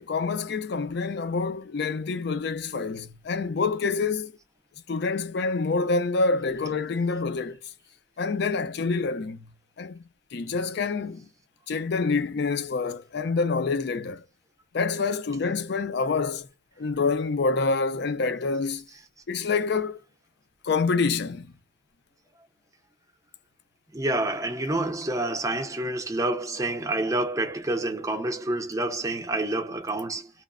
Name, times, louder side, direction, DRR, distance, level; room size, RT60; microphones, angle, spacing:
voice 1, 0.0-4.3 4.9-7.6 8.2-9.5 9.8-10.0 10.3-11.3 11.7-14.2 14.7-16.5 16.8-18.9 19.3-20.0 20.6-21.5, left 4 dB, 55° left, 0.4 m, -27 dB
voice 2, 23.9-30.3, right 2 dB, 15° right, 0.5 m, -28 dB
3.0 x 2.0 x 2.4 m
head